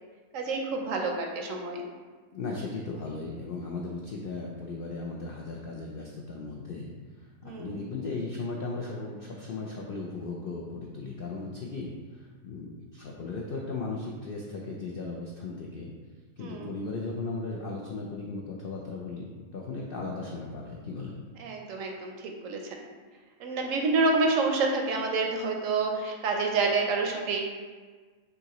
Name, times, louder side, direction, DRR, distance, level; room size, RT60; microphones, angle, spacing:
voice 1, 0.3-1.8 7.4-7.8 16.4-16.7 21.4-22.7 23.4-27.4, right 3 dB, 70° right, 2 dB, 0.9 m, -28 dB
voice 2, 2.3-15.9 16.4-21.1, left 3 dB, 75° left, -2 dB, 0.5 m, -37 dB
6.2 x 2.8 x 2.9 m, 1.5 s
omnidirectional pair, 1.5 m